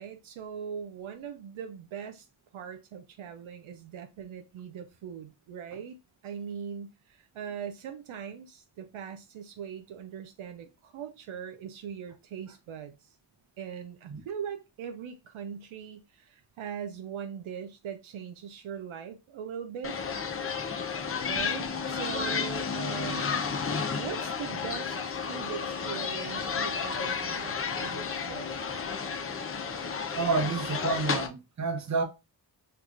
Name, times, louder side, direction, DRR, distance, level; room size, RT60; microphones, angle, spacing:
voice 1, 0.0-2.3 2.5-6.0 6.2-13.1 13.6-20.0 21.3-23.3 24.0-28.5, right 8 dB, 75° right, 0.6 m, -40 dB
sound 1, 19.8-31.3, left 5 dB, 30° left, 0.5 m, -32 dB
voice 2, 30.1-32.0, right 4 dB, 35° right, 0.8 m, -29 dB
4.7 x 2.3 x 2.4 m
cardioid pair, 70°, 49 cm